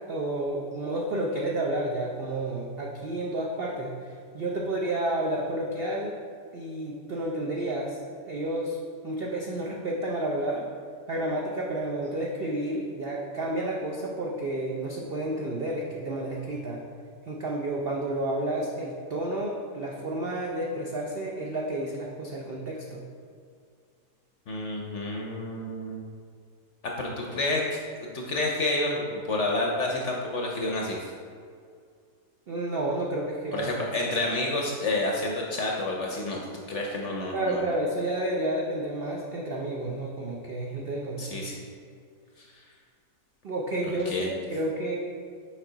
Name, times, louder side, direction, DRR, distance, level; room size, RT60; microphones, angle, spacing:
voice 1, 0.1-6.1 6.5-8.8 9.0-10.7 11.1-16.8 17.3-23.0 32.5-33.7 37.3-41.5 43.4-44.9, right 1 dB, 65° right, -2 dB, 0.5 m, -31 dB
voice 2, 24.5-26.0 27.0-31.1 33.5-37.6 41.2-41.6 42.4-42.5 43.8-44.3, left 2 dB, 60° left, -1 dB, 0.8 m, -29 dB
6.6 x 4.9 x 3.8 m, 2.2 s
omnidirectional pair, 1.8 m